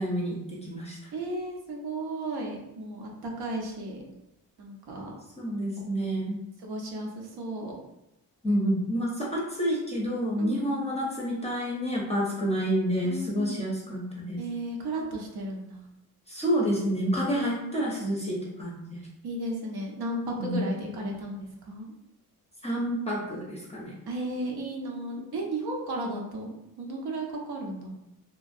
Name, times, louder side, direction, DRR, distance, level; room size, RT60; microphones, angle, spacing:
voice 1, 0.0-1.1 5.4-6.4 8.4-14.4 16.3-19.0 20.4-20.6 22.6-24.0, equal, 20° left, -4 dB, 0.5 m, -29 dB
voice 2, 1.1-4.0 4.6-5.1 6.6-7.8 10.4-10.9 13.0-13.6 14.4-15.8 17.3-17.7 19.2-21.9 24.1-27.9, right 1 dB, 85° right, -1 dB, 0.7 m, -34 dB
2.9 x 2.3 x 2.5 m, 0.87 s
cardioid pair, 115°, 37 cm